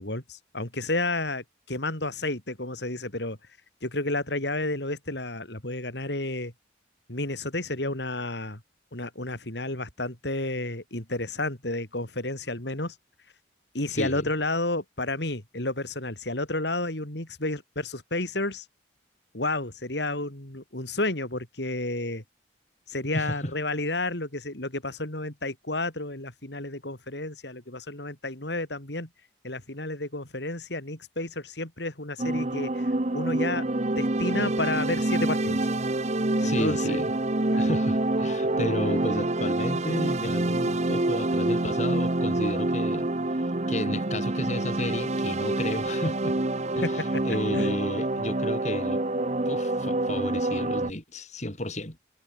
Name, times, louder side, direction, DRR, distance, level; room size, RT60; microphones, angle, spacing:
voice 1, 0.0-3.4 3.8-6.5 7.1-8.6 8.9-13.0 13.7-18.7 19.3-22.2 22.9-29.1 29.4-33.7 34.0-35.6 36.4-37.0 37.5-37.7 46.8-46.9 47.5-47.7, left 2 dB, 65° left, 3.8 m, -31 dB
voice 2, 13.9-14.3 23.1-23.5 36.4-37.1 37.6-43.1 43.4-46.4 46.7-49.0 49.4-52.0, left 1 dB, 40° left, 4.3 m, -32 dB
sound 1, 32.2-50.9, right 2 dB, 35° right, 1.0 m, -27 dB
head